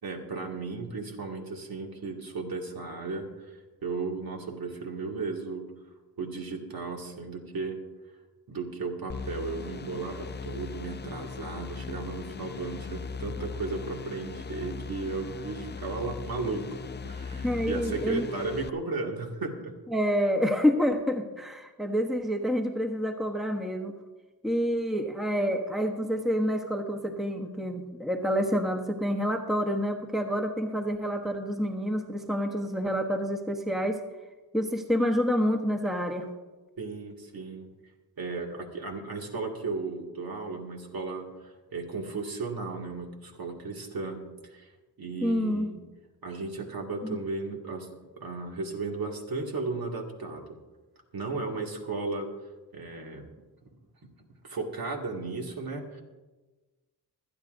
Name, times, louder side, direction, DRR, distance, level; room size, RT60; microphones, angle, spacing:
voice 1, 0.0-5.7 6.2-7.8 8.5-16.6 17.0-19.7 36.8-37.7 38.2-44.2 44.5-44.7 45.0-45.8 46.2-47.9 48.2-50.4 51.1-52.3 52.7-53.3 54.0-54.1 54.4-56.0, right 3 dB, 65° right, 0 dB, 2.2 m, -35 dB
sound 1, 9.1-18.7, left 5 dB, 30° left, 0.4 m, -39 dB
voice 2, 17.3-18.3 19.9-23.9 24.4-34.0 34.5-36.3 45.2-45.7 47.0-47.2, equal, ahead, 3 dB, 1.0 m, -28 dB
25.5 x 9.7 x 2.6 m, 1.2 s
wide cardioid pair, 95°, 39 cm